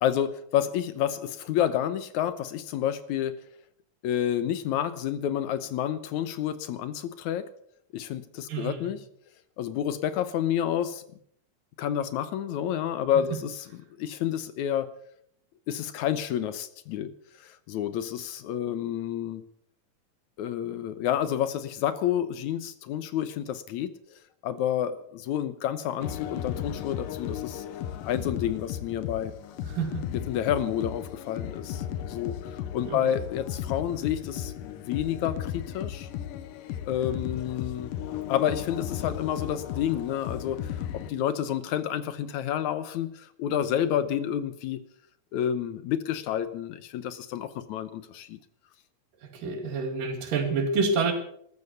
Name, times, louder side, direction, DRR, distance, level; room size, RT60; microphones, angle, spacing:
voice 1, 0.0-3.4 4.0-7.5 7.9-9.1 9.6-11.0 11.8-14.9 15.7-17.1 17.4-19.4 20.4-27.7 28.1-29.3 30.1-36.1 36.9-37.9 38.3-44.8 45.3-48.4, left 10 dB, 70° left, 13 dB, 2.1 m, -29 dB
voice 2, 8.5-8.9 29.7-30.0 32.9-33.0 49.3-51.1, right 4 dB, 80° right, 6 dB, 4.0 m, -28 dB
sound 1, 26.0-41.1, left 10 dB, 85° left, 2.7 m, -35 dB
14.0 x 13.5 x 7.1 m, 0.67 s
omnidirectional pair, 3.8 m